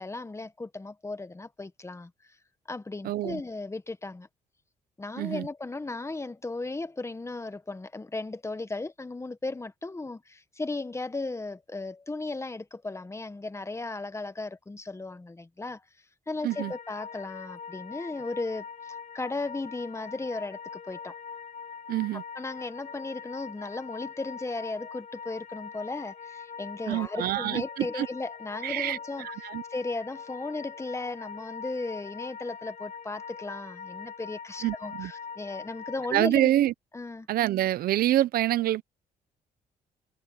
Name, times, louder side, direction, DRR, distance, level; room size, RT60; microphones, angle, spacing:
voice 1, 0.0-2.1 2.7-4.3 5.0-15.8 16.3-21.2 22.4-29.3 29.7-36.5 36.9-37.3, left 3 dB, 20° left, 1.4 m, -36 dB
voice 2, 3.0-3.4 5.2-5.5 16.4-16.7 21.9-22.2 26.9-28.1 28.6-29.6 34.6-35.1 36.1-36.7 37.3-38.8, right 13 dB, 80° right, 0.8 m, -26 dB
sound 1, 16.5-36.2, left 6 dB, 50° left, 0.8 m, -42 dB
cardioid pair, 75°, 15 cm